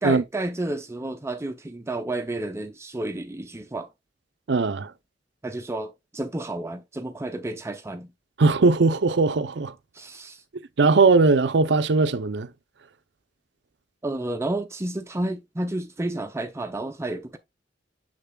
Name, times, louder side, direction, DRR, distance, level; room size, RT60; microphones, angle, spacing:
voice 1, 0.0-3.9 5.4-8.1 9.9-10.4 14.0-17.4, right 2 dB, 15° right, 0.5 m, -31 dB
voice 2, 4.5-4.9 8.4-9.7 10.8-12.5, right 3 dB, 65° right, 0.6 m, -19 dB
6.8 x 6.5 x 2.3 m
head